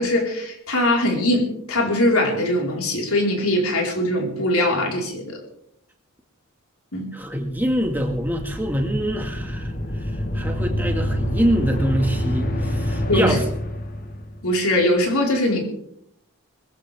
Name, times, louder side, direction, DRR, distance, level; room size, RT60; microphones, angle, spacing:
voice 1, 0.0-5.4 6.9-7.1 13.1-13.4 14.4-15.6, left 1 dB, 85° left, -1 dB, 4.8 m, -21 dB
voice 2, 7.1-9.7 10.0-13.4, equal, 10° right, 2 dB, 2.0 m, -24 dB
sound 1, 7.5-14.4, equal, 40° left, 1.5 m, -27 dB
22.0 x 15.0 x 3.6 m, 0.71 s
head